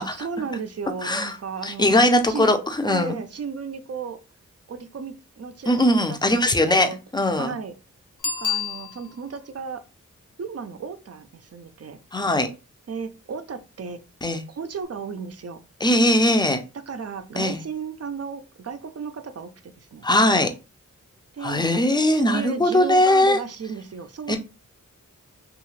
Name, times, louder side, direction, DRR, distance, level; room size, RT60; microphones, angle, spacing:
voice 1, 0.1-2.5 2.9-4.2 4.7-7.0 7.4-7.8 8.4-9.8 10.4-12.0 12.9-14.0 14.5-15.6 16.9-19.5 19.8-20.1 21.3-21.7 22.1-24.4, right 6 dB, 50° right, 9 dB, 0.5 m, -34 dB
voice 2, 1.0-1.4 1.6-3.2 5.7-7.5 12.1-12.5 14.2-14.4 15.8-16.6 17.4-17.6 20.0-20.5 21.4-23.4 24.3-24.4, left 1 dB, 15° left, 6 dB, 0.5 m, -20 dB
Bicycle bell, 8.2-9.4 14.8-14.9, left 7 dB, 65° left, 0.7 m, -29 dB
2.7 x 2.4 x 3.1 m, 0.30 s
wide cardioid pair, 70°, 32 cm